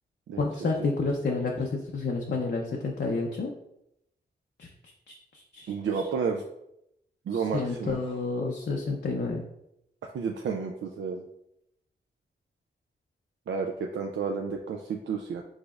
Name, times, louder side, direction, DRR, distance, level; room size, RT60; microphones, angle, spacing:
voice 1, 0.4-3.5 4.6-4.7 5.1-5.2 5.5-5.7 7.3-9.4, left 3 dB, 60° left, 0 dB, 0.6 m, -29 dB
voice 2, 5.7-6.4 7.3-8.0 10.0-11.2 13.5-15.4, right 5 dB, 80° right, 1 dB, 0.4 m, -31 dB
4.9 x 4.0 x 2.4 m, 0.81 s
wide cardioid pair, 80°, 19 cm